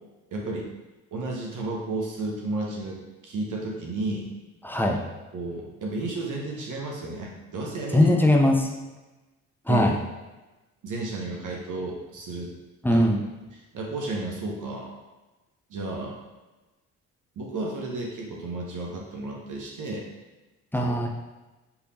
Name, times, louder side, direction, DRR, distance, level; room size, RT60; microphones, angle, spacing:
voice 1, 0.3-0.7 1.1-4.3 5.3-8.2 9.7-9.9 10.8-12.5 12.9-13.1 13.5-14.9 15.7-16.2 17.4-20.0 20.8-20.9, right 2 dB, 50° right, -1 dB, 1.0 m, -32 dB
voice 2, 4.6-5.0 7.9-8.6 9.7-9.9 12.8-13.2 20.7-21.1, left 1 dB, 5° left, 1 dB, 0.6 m, -20 dB
4.7 x 3.3 x 2.7 m, 1.1 s
hypercardioid pair, 50°, 39 cm